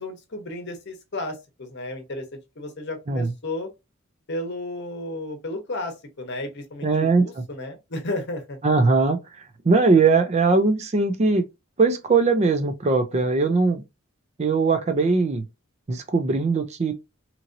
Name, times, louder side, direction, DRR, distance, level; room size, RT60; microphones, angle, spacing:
voice 1, 0.0-2.2 2.6-3.7 4.3-8.6, left 2 dB, 55° left, 0.8 m, -33 dB
voice 2, 6.8-7.4 8.6-9.2 9.6-11.4 11.8-13.8 14.4-15.4 15.9-16.9, right 4 dB, 30° right, 0.4 m, -20 dB
2.9 x 2.7 x 2.5 m
head